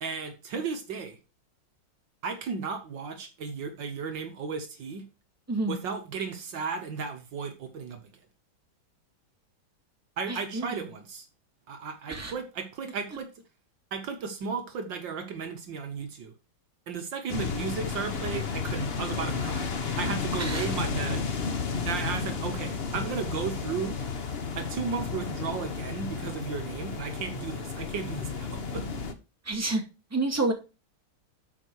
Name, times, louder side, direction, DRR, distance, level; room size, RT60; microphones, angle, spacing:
voice 1, 0.0-1.2 2.2-5.0 5.7-8.1 10.2-11.3 11.7-13.3 13.9-16.3 16.9-19.7 20.0-21.3 21.9-24.0 24.6-28.8, right 5 dB, 70° right, 1.9 m, -34 dB
voice 2, 10.3-10.7 12.1-12.3 20.4-20.7 29.4-29.8 30.1-30.5, right 2 dB, 10° right, 2.1 m, -28 dB
sound 1, 17.3-29.1, left 5 dB, 40° left, 1.0 m, -32 dB
12.5 x 5.0 x 4.7 m
omnidirectional pair, 2.2 m